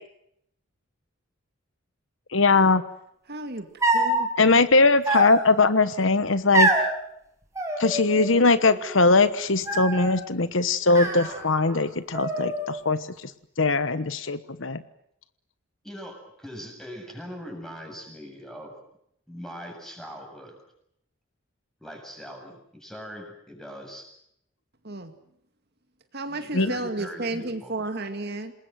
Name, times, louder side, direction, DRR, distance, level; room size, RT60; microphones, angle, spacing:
voice 1, 2.3-2.8 4.4-6.7 7.8-13.0 13.6-14.8 26.5-26.7, left 3 dB, 65° left, 13 dB, 1.2 m, -20 dB
voice 2, 3.3-3.7 3.9-4.5 24.8-25.1 26.1-28.5, right 2 dB, 50° right, 7 dB, 2.2 m, -32 dB
sound 1, 3.8-4.2 5.0-5.7 6.5-6.9 7.5-8.4 8.7-9.2 9.7-10.2 10.9-11.8 12.1-12.9, right 2 dB, 15° right, 5.7 m, -26 dB
voice 3, 15.8-18.8 19.3-20.6 21.8-24.2 26.3-27.7, equal, ahead, 3 dB, 7.6 m, -41 dB
27.5 x 20.5 x 7.8 m, 0.74 s
head